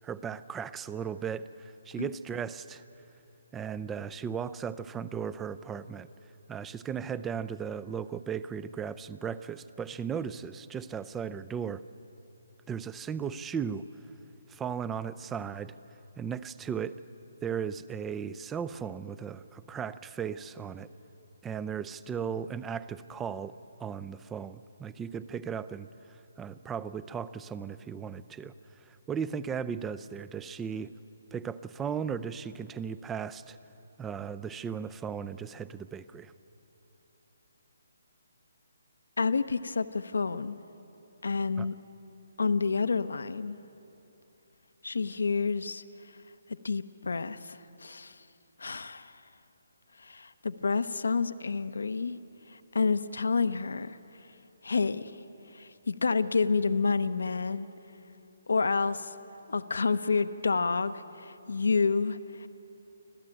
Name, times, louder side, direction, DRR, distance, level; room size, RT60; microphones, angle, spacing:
voice 1, 0.0-2.8 3.5-6.1 6.5-11.8 12.7-13.9 14.5-15.8 16.2-17.0 17.4-20.9 21.4-28.5 28.8-30.9 31.3-33.6 34.0-36.3 41.6-41.7, right 7 dB, 10° right, 16 dB, 0.5 m, -36 dB
voice 2, 39.2-40.6 41.2-41.7 42.4-43.6 44.8-45.8 46.5-48.2 48.6-49.2 50.0-52.2 52.5-54.0 54.6-55.2 55.5-57.7 58.5-59.1 59.5-62.5, left 4 dB, 80° left, 12 dB, 0.8 m, -29 dB
25.5 x 15.5 x 9.0 m, 2.9 s
hypercardioid pair, 155°, 0 cm